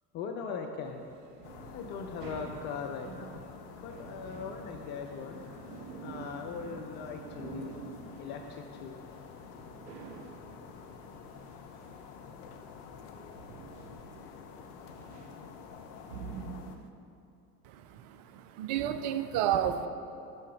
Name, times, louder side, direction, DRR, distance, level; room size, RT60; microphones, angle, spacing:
voice 1, 0.1-1.0 1.7-3.4 3.8-5.4 6.0-7.8 8.2-9.0, left 5 dB, 25° left, 3 dB, 0.3 m, -40 dB
sound 1, 0.8-16.9, right 5 dB, 75° right, 0.7 m, -48 dB
sound 2, 1.4-16.8, left 6 dB, 45° left, 0.7 m, -49 dB
voice 2, 17.6-19.9, right 10 dB, 40° right, 9 dB, 0.5 m, -31 dB
9.4 x 5.6 x 4.7 m, 2.7 s
figure-of-eight pair, 70°, 48 cm